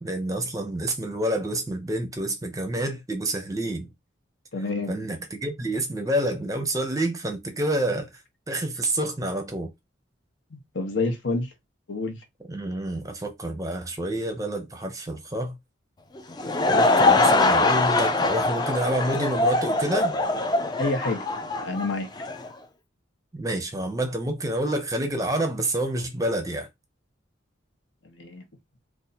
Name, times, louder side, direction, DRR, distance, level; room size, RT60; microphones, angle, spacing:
voice 1, 0.0-3.9 4.9-9.7 12.5-15.6 16.7-20.1 23.3-26.7, right 1 dB, 15° right, 0.6 m, -28 dB
voice 2, 4.5-5.0 10.5-11.5 11.9-12.2 20.8-21.2 21.6-22.1 28.0-28.4, left 3 dB, 70° left, 0.9 m, -28 dB
Laughter / Crowd, 16.2-22.5, left 2 dB, 20° left, 0.4 m, -22 dB
2.7 x 2.4 x 4.0 m
head